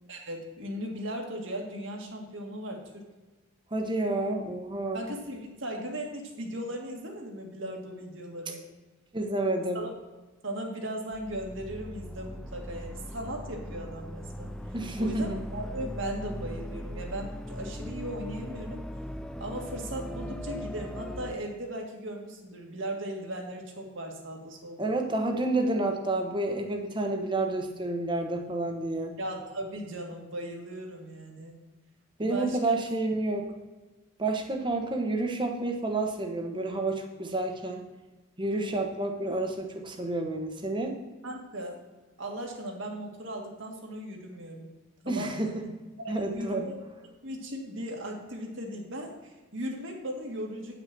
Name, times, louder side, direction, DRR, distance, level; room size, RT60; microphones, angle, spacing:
voice 1, 0.1-3.1 4.9-8.6 9.7-9.9 10.4-14.5 15.0-18.8 19.4-24.9 29.2-31.5 32.2-32.8 41.2-41.8 42.2-44.7 45.0-45.5 46.0-46.7 47.2-50.8, right 1 dB, 65° right, 1 dB, 1.9 m, -37 dB
voice 2, 3.7-5.0 9.1-9.8 14.7-15.4 24.8-29.1 32.2-33.5 34.2-37.9 38.4-41.0 45.1-45.6 46.1-46.7, right 2 dB, 25° right, 3 dB, 1.1 m, -29 dB
sound 1, 11.1-21.3, equal, 5° left, 0.3 m, -39 dB
9.4 x 6.0 x 6.0 m, 1.2 s
head